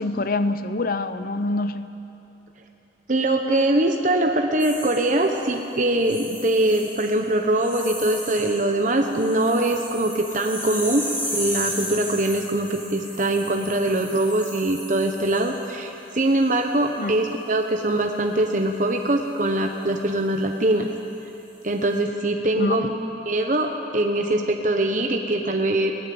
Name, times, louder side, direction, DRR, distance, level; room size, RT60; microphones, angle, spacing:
voice 1, 0.0-1.9 17.0-17.2 22.6-22.8, left 2 dB, 50° left, 12 dB, 0.6 m, -25 dB
voice 2, 3.1-11.0 11.3-20.9 21.6-22.9 23.3-25.9, right 1 dB, 45° right, 3 dB, 1.0 m, -22 dB
sound 1, 4.6-5.5 6.0-7.2 7.5-8.6 8.9-15.7 16.2-16.5, equal, 10° left, 6.0 m, -35 dB
21.0 x 16.5 x 7.8 m, 3.0 s
head